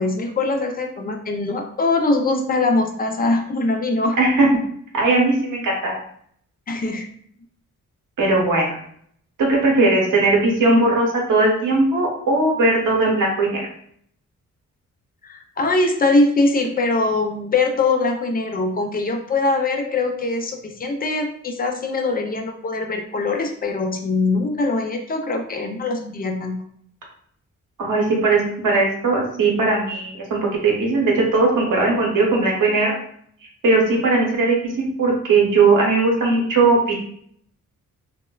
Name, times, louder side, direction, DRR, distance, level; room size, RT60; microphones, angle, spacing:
voice 1, 0.0-4.2 6.7-7.1 15.2-26.6, left 3 dB, 30° left, 4 dB, 0.4 m, -22 dB
voice 2, 4.2-4.5 4.9-5.9 8.2-8.7 9.4-13.7 27.8-32.9 33.6-36.9, right 3 dB, 90° right, -1 dB, 0.9 m, -18 dB
3.1 x 2.1 x 2.2 m, 0.64 s
wide cardioid pair, 135°, 31 cm